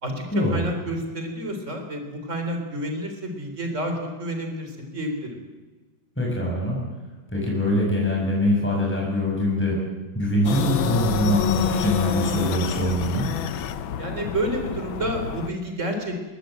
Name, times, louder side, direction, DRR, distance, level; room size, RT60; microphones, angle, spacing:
voice 1, 0.5-5.4 14.0-16.2, right 1 dB, 35° right, 4 dB, 4.3 m, -29 dB
voice 2, 6.2-6.8 7.3-9.8 10.1-13.3, left 1 dB, 5° left, -3 dB, 6.6 m, -23 dB
sound 1, 10.4-15.5, left 9 dB, 80° left, 1.8 m, -28 dB
22.5 x 18.5 x 7.9 m, 1.3 s
omnidirectional pair, 2.2 m